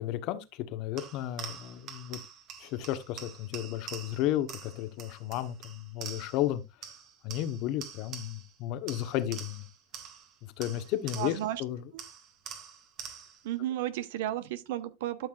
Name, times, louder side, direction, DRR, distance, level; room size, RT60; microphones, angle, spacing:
voice 1, 0.0-2.2 2.6-6.6 7.2-9.6 10.4-11.8, left 13 dB, 55° left, 1.1 m, -33 dB
sound 1, 1.0-6.5 6.8-8.6 8.9-11.6 12.0-13.5, right 7 dB, 45° right, 1.6 m, -46 dB
voice 2, 11.2-11.6 11.9-12.0 13.4-15.3, right 13 dB, 70° right, 0.9 m, -33 dB
12.0 x 5.9 x 2.4 m
hypercardioid pair, 90°, 0 cm